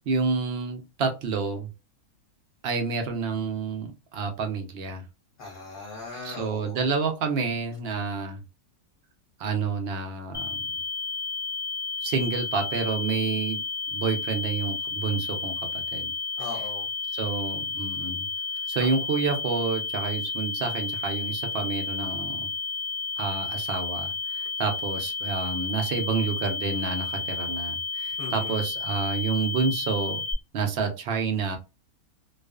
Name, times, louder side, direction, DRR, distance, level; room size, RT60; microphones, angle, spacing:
voice 1, 0.1-1.7 2.6-5.0 6.2-8.4 9.4-10.6 12.0-13.6 13.9-16.1 17.1-18.3 18.7-22.5 23.2-30.2 30.5-31.6, right 5 dB, 70° right, 4 dB, 0.5 m, -29 dB
voice 2, 5.4-6.9 16.4-16.8 28.2-28.6, left 3 dB, 45° left, -2 dB, 0.8 m, -38 dB
sound 1, 10.3-30.3, left 4 dB, 15° left, 0.4 m, -32 dB
2.4 x 2.3 x 2.3 m, 0.27 s
omnidirectional pair, 1.6 m